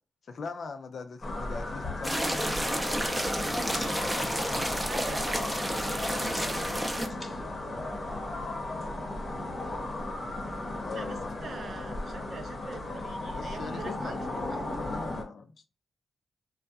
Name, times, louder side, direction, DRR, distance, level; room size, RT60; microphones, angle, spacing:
voice 1, 0.3-5.0 10.8-11.3 13.3-15.6, left 4 dB, 60° left, 0.4 m, -41 dB
sound 1, 1.2-15.2, left 2 dB, 45° left, 0.7 m, -36 dB
sound 2, 2.0-7.1, right 1 dB, 10° right, 0.5 m, -31 dB
sound 3, 2.2-4.2 4.6-5.0 5.3-8.5, left 1 dB, 10° left, 0.9 m, -47 dB
voice 2, 4.7-6.5 10.9-14.2 14.5-14.8, right 5 dB, 60° right, 0.4 m, -45 dB
2.7 x 2.2 x 2.2 m
cardioid pair, 65°, 0 cm